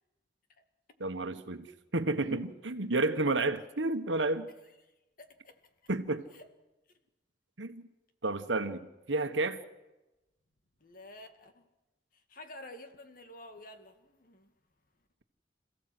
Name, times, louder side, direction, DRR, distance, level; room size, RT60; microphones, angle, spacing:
voice 1, 1.0-1.7 1.9-4.5 5.9-6.3 7.6-7.9 8.2-9.6, right 2 dB, 85° right, 9 dB, 1.4 m, -31 dB
voice 2, 5.2-5.6 6.3-6.5 10.8-11.6 12.1-14.5, left 1 dB, 50° left, 7 dB, 2.1 m, -50 dB
27.0 x 16.0 x 7.9 m, 1.0 s
head